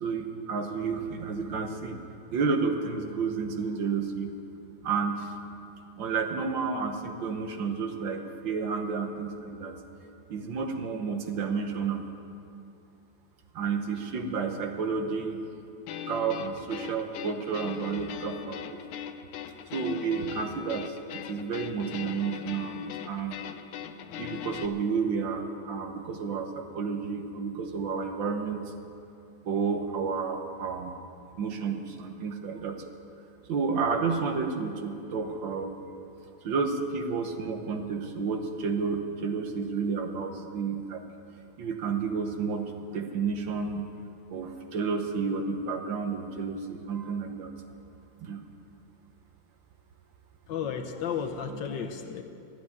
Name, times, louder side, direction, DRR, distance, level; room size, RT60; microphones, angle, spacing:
voice 1, 0.0-2.0 2.3-4.3 4.8-5.3 6.0-9.8 10.3-12.0 13.6-15.4 16.1-18.8 19.7-23.4 24.2-28.6 29.4-30.9 31.4-32.8 33.5-35.8 36.4-41.0 41.6-42.6 42.9-43.9 44.3-47.5 48.2-48.4, right 5 dB, 70° right, 5 dB, 1.7 m, -31 dB
sound 1, 15.9-24.7, left 10 dB, 90° left, 1.5 m, -40 dB
voice 2, 50.5-52.2, left 7 dB, 70° left, 5 dB, 1.5 m, -33 dB
13.0 x 8.7 x 9.4 m, 2.6 s
omnidirectional pair, 2.2 m